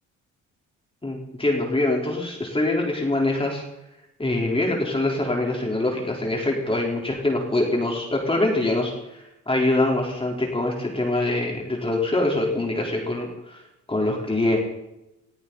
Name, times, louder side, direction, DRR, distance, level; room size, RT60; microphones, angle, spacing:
voice 1, 1.0-3.6 4.2-8.9 9.5-13.6 13.9-14.6, left 2 dB, 20° left, -1 dB, 3.8 m, -24 dB
20.5 x 13.5 x 4.1 m, 0.90 s
cardioid pair, 90°, 30 cm